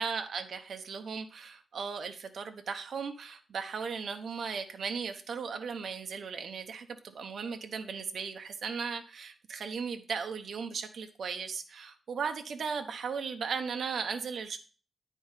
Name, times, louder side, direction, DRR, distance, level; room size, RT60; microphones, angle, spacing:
voice 1, 0.0-14.6, right 5 dB, 65° right, 7 dB, 1.0 m, -37 dB
9.4 x 4.6 x 5.6 m, 0.37 s
wide cardioid pair, 125°, 0 cm